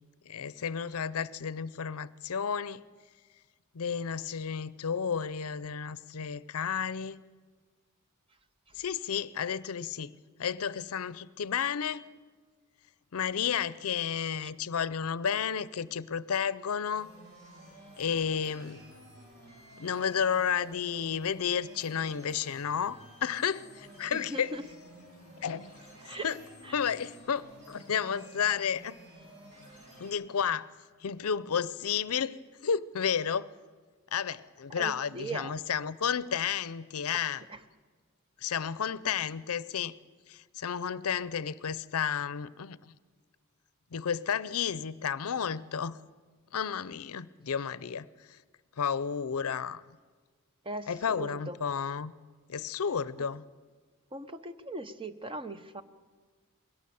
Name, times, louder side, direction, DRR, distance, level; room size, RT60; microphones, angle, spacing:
voice 1, 0.3-2.8 3.7-7.2 8.8-10.1 10.4-12.1 13.1-17.1 18.0-18.8 19.8-24.5 25.4-25.7 26.1-26.4 26.7-29.0 30.0-30.7 31.0-33.5 34.1-37.5 38.4-39.9 40.3-42.9 43.9-46.0 46.5-48.4 48.8-49.8 50.9-52.1 52.5-53.4, left 7 dB, 70° left, 18 dB, 0.6 m, -32 dB
sound 1, 16.9-30.1, equal, 50° right, 7.2 m, -53 dB
voice 2, 24.1-24.6 26.0-26.3 26.6-26.8 34.8-35.5 37.1-37.6 50.6-51.6 54.1-55.8, right 2 dB, 25° right, 10 dB, 0.8 m, -40 dB
21.5 x 17.5 x 7.0 m, 1.5 s
head